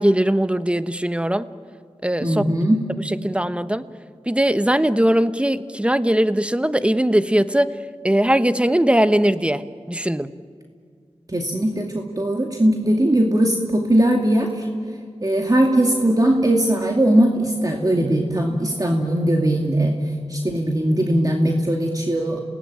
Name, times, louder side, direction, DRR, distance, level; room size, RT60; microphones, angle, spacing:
voice 1, 0.0-1.5 2.0-2.4 3.0-3.8 4.3-7.7 8.0-10.3, right 1 dB, 10° right, 12 dB, 1.1 m, -20 dB
voice 2, 2.2-2.8 11.3-14.7 15.2-19.9 20.3-22.4, right 1 dB, 30° right, 1 dB, 2.4 m, -19 dB
28.5 x 18.5 x 9.0 m, 2.1 s
cardioid pair, 40°, 12 cm